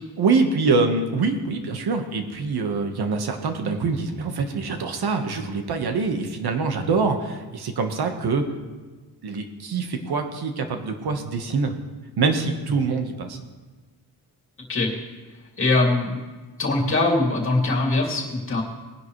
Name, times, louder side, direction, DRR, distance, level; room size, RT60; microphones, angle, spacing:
voice 1, 0.2-8.4 9.2-11.7 12.2-13.4, right 4 dB, 65° right, 5 dB, 1.4 m, -24 dB
voice 2, 15.6-16.2 16.6-18.6, left 2 dB, 30° left, -2 dB, 2.6 m, -22 dB
20.5 x 10.5 x 3.2 m, 1.3 s
wide cardioid pair, 170°, 40 cm